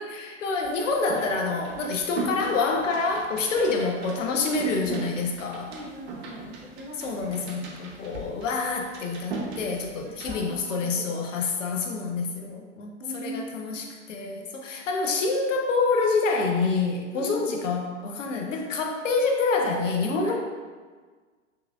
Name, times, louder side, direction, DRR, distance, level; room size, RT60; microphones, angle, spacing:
voice 1, 0.0-5.7 7.0-20.4, left 4 dB, 80° left, 2 dB, 0.6 m, -27 dB
sound 1, 0.6-10.3, right 3 dB, 60° right, 0.7 m, -38 dB
voice 2, 3.5-3.9 5.7-7.5 10.0-11.2 13.0-13.8 17.1-17.5 20.2-20.4, equal, 15° right, -6 dB, 1.0 m, -40 dB
3.6 x 3.0 x 2.3 m, 1.5 s
hypercardioid pair, 90°, 37 cm